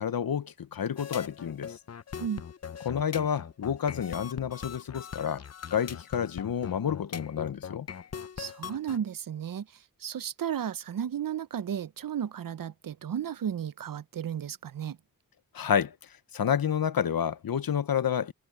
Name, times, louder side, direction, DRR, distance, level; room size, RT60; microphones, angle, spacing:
voice 1, 0.0-1.8 2.8-5.4 5.7-7.9 15.5-15.9 16.3-18.3, left 8 dB, 80° left, 1.0 m, -29 dB
sound 1, 1.0-9.0, left 7 dB, 45° left, 0.7 m, -41 dB
voice 2, 8.4-9.7 10.0-15.0, right 9 dB, 70° right, 0.7 m, -34 dB
cardioid pair, 65°, 35 cm